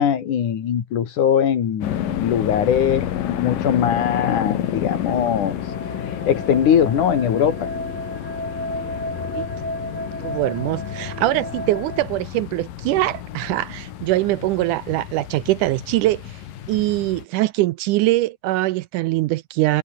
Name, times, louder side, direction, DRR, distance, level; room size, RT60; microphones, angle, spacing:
voice 1, 0.0-5.6 6.3-7.7, left 8 dB, 65° left, 3.6 m, -21 dB
sound 1, 1.8-17.2, left 11 dB, 80° left, 3.4 m, -30 dB
sound 2, 4.4-12.1, equal, 5° left, 3.7 m, -33 dB
voice 2, 10.2-16.2 16.7-19.8, right 17 dB, 80° right, 2.0 m, -22 dB
omnidirectional pair, 3.9 m